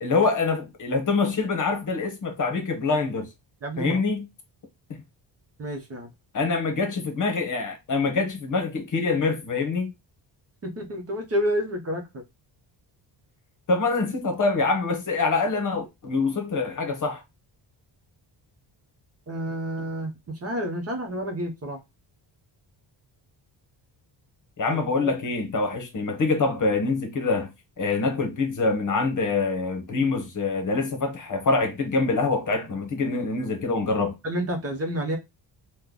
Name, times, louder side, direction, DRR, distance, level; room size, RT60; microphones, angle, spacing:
voice 1, 0.0-3.3 3.8-4.3 4.9-5.0 6.3-9.9 13.7-17.2 24.6-27.5 27.8-34.1, left 3 dB, 40° left, 1.0 m, -25 dB
voice 2, 3.6-4.0 5.6-6.1 10.6-12.2 19.3-21.8 24.7-25.1 34.2-35.2, equal, 30° right, 0.9 m, -29 dB
3.1 x 2.3 x 3.8 m
cardioid pair, 140°, 45 cm